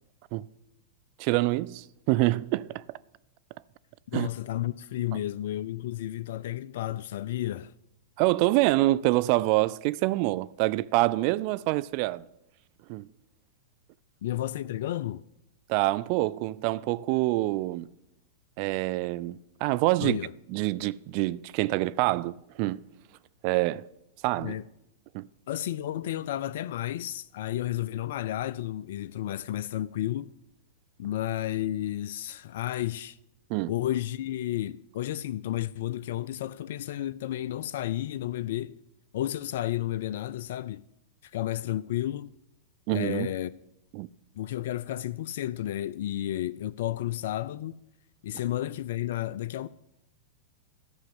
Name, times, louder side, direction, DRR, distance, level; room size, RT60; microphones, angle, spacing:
voice 1, 1.2-3.0 4.1-4.3 8.2-12.2 12.9-13.1 15.7-17.9 18.6-20.2 20.5-22.9 23.4-23.9 24.2-24.5 25.1-25.3 33.5-33.7 42.9-43.3 43.9-44.1, right 19 dB, 50° right, 0.4 m, -26 dB
voice 2, 4.1-7.7 14.2-15.2 20.0-20.3 24.4-24.6 25.5-30.3 31.0-33.2 33.7-38.8 39.1-40.8 41.2-42.3 42.9-43.5 44.3-47.8 48.2-49.7, left 13 dB, 65° left, 0.3 m, -32 dB
13.0 x 6.3 x 7.7 m
hypercardioid pair, 105°, 0 cm